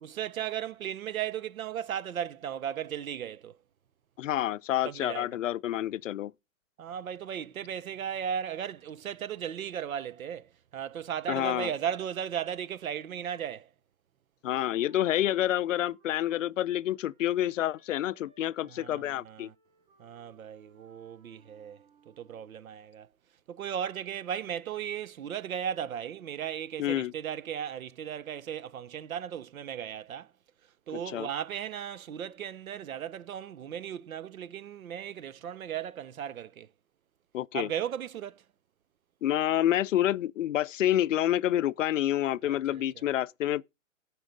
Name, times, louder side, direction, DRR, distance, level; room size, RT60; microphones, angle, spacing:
voice 1, 0.0-3.6 4.8-5.3 6.8-13.7 18.7-19.5 20.0-21.8 22.1-23.1 23.5-30.3 30.9-36.7 37.5-38.4 42.4-43.0, right 9 dB, 80° right, 0.7 m, -36 dB
voice 2, 4.2-6.3 11.3-11.7 14.4-19.5 26.8-27.1 30.9-31.3 37.3-37.7 39.2-43.6, left 12 dB, 65° left, 0.5 m, -28 dB
Wind instrument woodwind instrument, 14.5-22.6, right 4 dB, 45° right, 4.1 m, -65 dB
12.0 x 4.7 x 5.1 m
hypercardioid pair, 135°, 41 cm